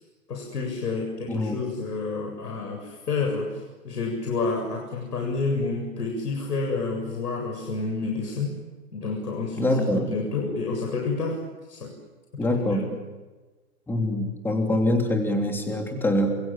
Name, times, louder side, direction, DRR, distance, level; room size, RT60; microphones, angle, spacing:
voice 1, 0.3-8.6 8.9-11.4 11.7-11.9 12.5-12.9, left 3 dB, 90° left, 1 dB, 7.6 m, -29 dB
voice 2, 1.3-1.6 9.6-10.1 12.4-12.9 13.9-16.4, left 1 dB, 5° left, 3 dB, 3.1 m, -24 dB
28.5 x 27.5 x 7.6 m, 1.2 s
hypercardioid pair, 155°, 47 cm